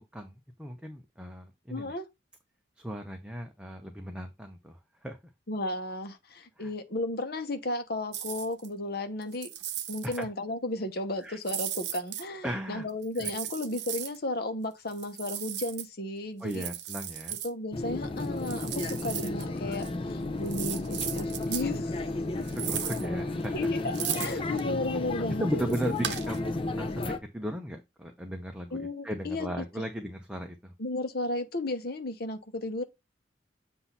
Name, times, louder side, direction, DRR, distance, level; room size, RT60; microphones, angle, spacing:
voice 1, 0.6-1.9 2.8-5.2 6.6-6.7 10.0-10.3 11.2-11.4 12.4-12.9 13.2-13.3 16.4-17.4 22.4-23.7 24.3-24.4 25.4-30.7, equal, 5° right, 0.7 m, -36 dB
voice 2, 1.7-2.1 5.5-9.5 9.9-16.7 17.4-22.0 23.5-25.6 26.1-26.2 28.7-29.5 29.8-29.9 30.8-32.8, left 2 dB, 55° left, 1.0 m, -34 dB
sound 1, 8.1-8.7 9.2-10.2 11.4-12.2 13.0-14.2 14.9-15.9 16.5-17.5 18.2-19.5 19.7-19.9 20.5-21.7 22.4-23.1 23.4-24.6 25.7-26.4, right 10 dB, 65° right, 0.8 m, -36 dB
sound 2, 17.7-27.2, left 2 dB, 30° left, 0.7 m, -33 dB
7.9 x 2.7 x 5.6 m
head